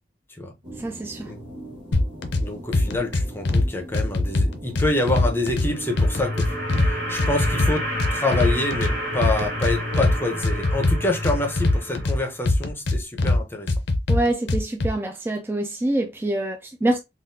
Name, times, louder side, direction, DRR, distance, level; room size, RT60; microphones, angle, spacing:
sound 1, 0.6-10.4, right 1 dB, 30° right, 1.5 m, -40 dB
voice 1, 0.8-1.3 14.1-17.0, right 1 dB, 10° right, 0.3 m, -25 dB
sound 2, 1.9-2.4 2.7-3.6 3.9-5.7 6.0-6.9 7.2-8.9 9.2-10.1 10.4-12.2 12.5-13.4 13.7-14.9, left 2 dB, 70° left, 0.5 m, -21 dB
voice 2, 2.4-13.7, left 2 dB, 10° left, 0.7 m, -27 dB
sound 3, 5.4-12.5, equal, 65° right, 1.9 m, -30 dB
3.7 x 2.4 x 2.7 m
head